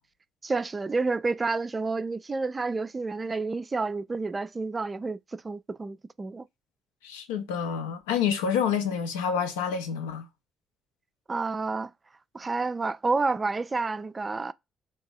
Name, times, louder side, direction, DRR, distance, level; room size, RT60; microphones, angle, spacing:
voice 1, 0.4-6.5 11.3-11.9 12.3-14.5, right 3 dB, 30° right, 0.3 m, -29 dB
voice 2, 7.0-10.3, left 7 dB, 75° left, 0.6 m, -28 dB
3.5 x 2.8 x 4.6 m
figure-of-eight pair, 45°, 0 cm